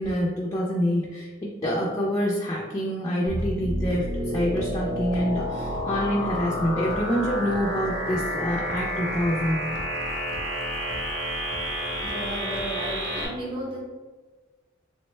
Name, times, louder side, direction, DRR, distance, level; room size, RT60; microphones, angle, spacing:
voice 1, 0.0-9.6, equal, 20° left, -4 dB, 0.3 m, -26 dB
sound 1, 3.3-13.3, equal, 80° right, 0.7 m, -30 dB
sound 2, 3.4-3.6 3.9-4.0 4.6-4.7 5.1-5.2 5.7-5.8 6.3-6.4 6.9-7.1 7.5-7.6 8.1-8.2 8.7-8.8 9.2-9.3 9.7-9.9 10.3-10.4 10.9-11.1 11.5-11.6 12.0-12.1 12.6-12.7, equal, 90° left, 0.6 m, -41 dB
voice 2, 11.5-13.8, right 1 dB, 25° right, -4 dB, 0.7 m, -34 dB
3.4 x 2.1 x 3.1 m, 1.3 s
head